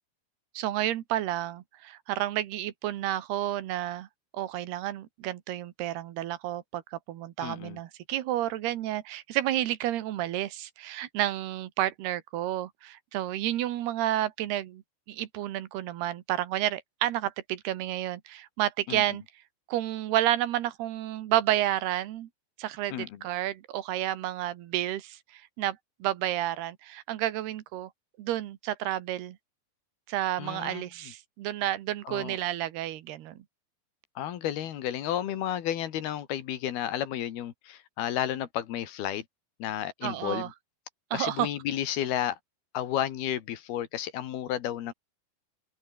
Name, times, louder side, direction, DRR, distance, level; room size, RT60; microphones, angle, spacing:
voice 1, 0.6-4.1 4.3-14.8 15.1-19.2 19.7-22.3 22.6-27.9 28.2-29.4 30.1-33.5 40.0-40.5 41.1-41.5, right 13 dB, 85° right, 3.4 m, -30 dB
voice 2, 7.4-7.8 18.9-19.0 22.9-23.2 30.4-30.8 32.1-32.4 34.2-39.3 39.6-40.5 41.1-42.4 42.7-44.9, left 11 dB, 75° left, 3.7 m, -32 dB
omnidirectional pair, 4.5 m